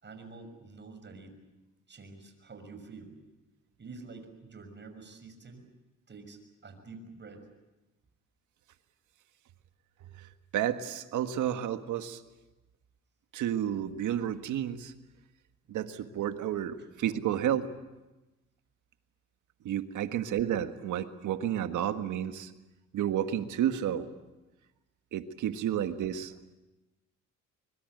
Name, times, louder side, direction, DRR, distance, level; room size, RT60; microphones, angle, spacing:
voice 1, 0.0-1.3 1.9-3.1 3.8-5.6 6.1-7.4 16.8-16.9, right 4 dB, 35° right, 7 dB, 6.3 m, -48 dB
voice 2, 10.5-12.2 13.3-14.9 15.7-17.7 19.6-22.5 22.9-24.1 25.1-26.5, right 10 dB, 80° right, 8 dB, 1.7 m, -31 dB
24.5 x 23.5 x 7.9 m, 1.0 s
cardioid pair, 90°, 30 cm